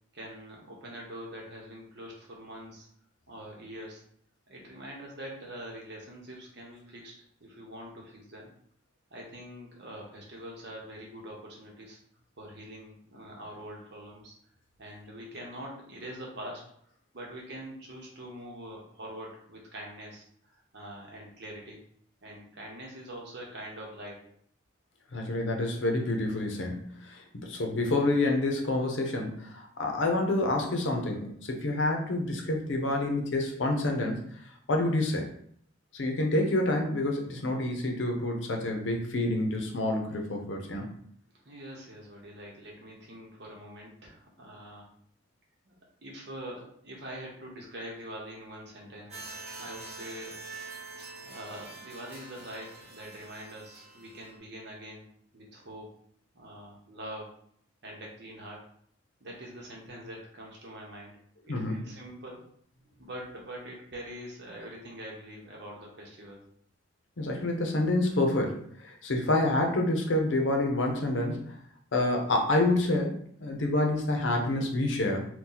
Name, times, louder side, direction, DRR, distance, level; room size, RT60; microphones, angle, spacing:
voice 1, 0.1-2.9 3.3-4.0 4.5-7.1 7.4-8.5 9.1-12.0 12.4-14.3 14.8-16.6 17.1-21.8 22.2-24.3 41.4-44.9 45.6-45.8 46.0-50.4 51.0-55.1 55.3-55.9 56.3-57.3 57.8-58.6 59.2-61.2 61.5-62.5 63.0-66.4, equal, 60° right, -1 dB, 0.9 m, -44 dB
voice 2, 25.1-34.2 34.7-35.3 35.9-40.9 61.5-61.8 67.2-71.6 71.9-75.3, left 2 dB, 70° left, 2 dB, 0.6 m, -28 dB
sound 1, 49.1-54.4, right 3 dB, 35° right, 1.1 m, -45 dB
2.8 x 2.3 x 3.8 m, 0.64 s
head